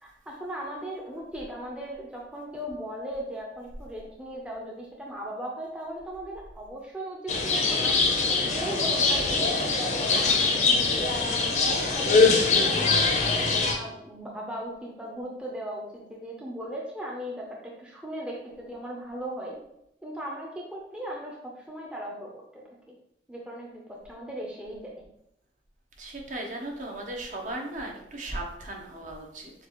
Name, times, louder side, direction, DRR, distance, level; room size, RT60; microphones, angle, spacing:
voice 1, 0.0-8.0 8.4-12.4 12.7-17.4 17.8-19.6 20.0-22.6 23.3-24.9, right 1 dB, 5° right, -3 dB, 0.6 m, -38 dB
sound 1, 7.3-13.7, left 4 dB, 40° left, 0.6 m, -23 dB
voice 2, 26.0-29.5, right 1 dB, 45° right, 0 dB, 0.8 m, -36 dB
6.5 x 2.4 x 3.0 m, 0.79 s
head